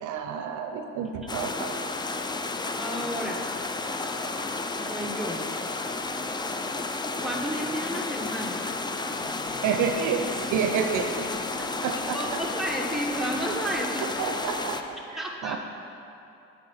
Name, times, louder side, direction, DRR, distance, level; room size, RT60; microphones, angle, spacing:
voice 1, 0.0-1.8 9.6-10.2 10.5-11.3 11.8-12.4 14.0-15.6, right 7 dB, 75° right, 5 dB, 0.5 m, -29 dB
sound 1, 1.3-14.8, left 3 dB, 15° left, 0.3 m, -32 dB
voice 2, 2.8-3.4 4.8-5.4 7.2-8.6 11.6-11.7 12.1-14.1 15.2-15.6, right 1 dB, ahead, -1 dB, 0.9 m, -32 dB
sound 2, 9.1-14.7, left 2 dB, 55° left, 1.5 m, -47 dB
8.7 x 4.5 x 4.3 m, 2.7 s
cardioid pair, 90°, 30 cm